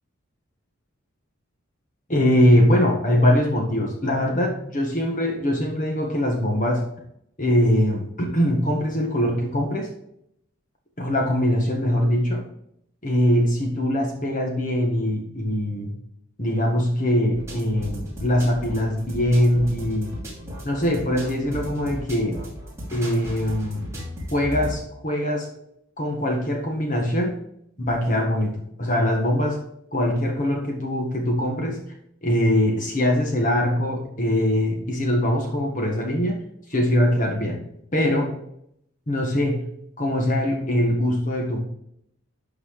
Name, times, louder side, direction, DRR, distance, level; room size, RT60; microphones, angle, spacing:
voice 1, 2.1-6.8 7.4-9.9 11.0-12.4 13.0-15.9 16.4-20.2 20.6-22.4 22.9-23.8 24.3-25.5 26.0-27.4 27.8-29.6 29.9-31.8 32.2-36.4 36.7-37.6 37.9-38.3 39.1-39.6 40.0-41.6, equal, 35° left, 1 dB, 1.6 m, -22 dB
sound 1, 17.3-24.7, equal, 15° right, 2.9 m, -35 dB
11.5 x 4.7 x 4.8 m, 0.73 s
head